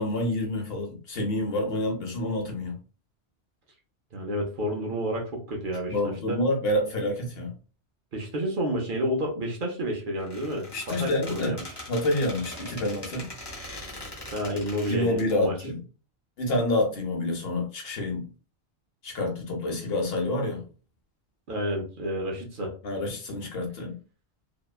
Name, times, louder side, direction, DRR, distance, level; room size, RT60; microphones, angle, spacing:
voice 1, 0.0-2.7 5.9-7.5 10.7-11.6 11.9-13.3 14.9-15.8 16.4-18.3 19.0-20.6 22.8-23.9, left 1 dB, 60° left, 1 dB, 1.0 m, -28 dB
voice 2, 4.1-6.4 8.1-11.6 14.3-15.6 21.5-22.7, equal, 55° right, 0 dB, 0.7 m, -30 dB
Squeak, 10.2-15.3, left 1 dB, 25° left, 0.8 m, -41 dB
2.8 x 2.1 x 2.2 m, 0.36 s
omnidirectional pair, 1.1 m